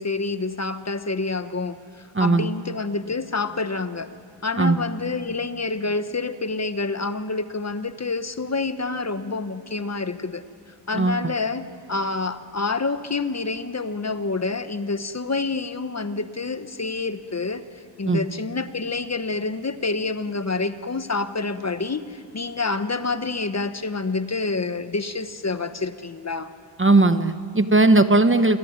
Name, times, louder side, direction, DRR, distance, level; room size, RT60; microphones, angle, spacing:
voice 1, 0.0-1.8 2.2-4.1 4.4-10.4 10.9-17.6 18.0-26.5, left 3 dB, 35° left, 10 dB, 1.2 m, -27 dB
voice 2, 2.1-2.5 4.6-4.8 10.9-11.3 18.0-18.3 26.8-28.6, right 2 dB, 25° right, 10 dB, 1.1 m, -18 dB
27.5 x 21.5 x 9.6 m, 2.3 s
wide cardioid pair, 85°, 45 cm